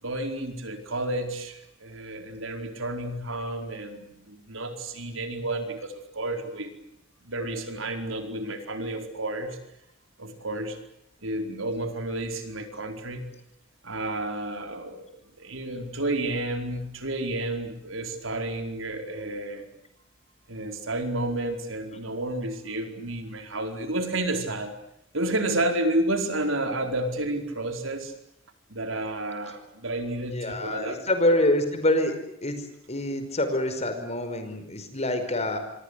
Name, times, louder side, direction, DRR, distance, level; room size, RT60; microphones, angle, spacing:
voice 1, 0.0-6.7 7.2-9.6 10.2-10.8 11.2-13.3 13.8-15.1 15.4-19.7 20.5-24.7 25.1-28.1 28.7-31.0, right 1 dB, 75° right, 6 dB, 4.7 m, -31 dB
voice 2, 30.3-32.1 32.4-35.6, left 1 dB, 35° left, 8 dB, 5.2 m, -26 dB
27.0 x 24.5 x 8.3 m, 0.75 s
head